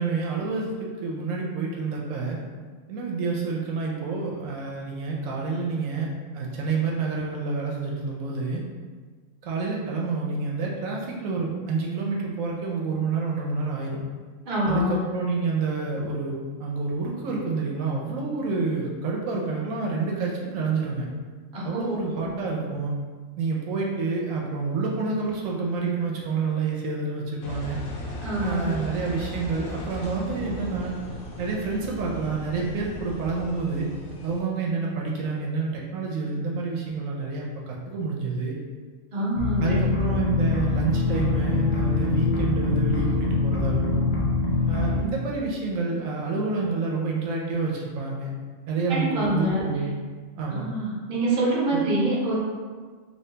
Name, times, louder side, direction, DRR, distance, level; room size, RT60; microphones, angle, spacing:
voice 1, 0.0-2.4 2.9-6.1 6.3-8.6 9.4-14.0 14.7-21.1 21.6-22.9 23.4-27.8 28.4-30.9 31.4-33.9 34.2-38.6 39.6-44.1 44.7-48.3 48.7-49.9 50.4-50.7 51.7-51.8, right 4 dB, 80° right, -2 dB, 1.0 m, -28 dB
voice 2, 14.4-15.0 21.5-22.3 28.2-28.8 39.1-39.9 48.9-49.7 50.5-52.4, right 1 dB, 45° right, -5 dB, 0.9 m, -26 dB
Engine, 27.4-34.4, left 1 dB, 85° left, 1.0 m, -37 dB
sound 1, 39.4-45.0, left 3 dB, 60° left, 0.8 m, -24 dB
2.9 x 2.8 x 3.2 m, 1.5 s
omnidirectional pair, 1.4 m